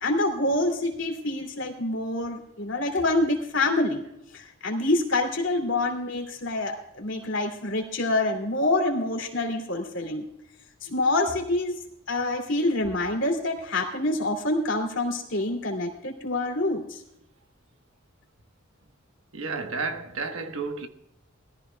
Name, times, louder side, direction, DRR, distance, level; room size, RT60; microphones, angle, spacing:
voice 1, 0.0-4.0 4.3-10.2 10.8-11.8 12.1-17.0, left 2 dB, 65° left, 2.6 m, -26 dB
voice 2, 19.3-20.9, right 4 dB, 75° right, 1.2 m, -31 dB
21.0 x 14.5 x 2.3 m
head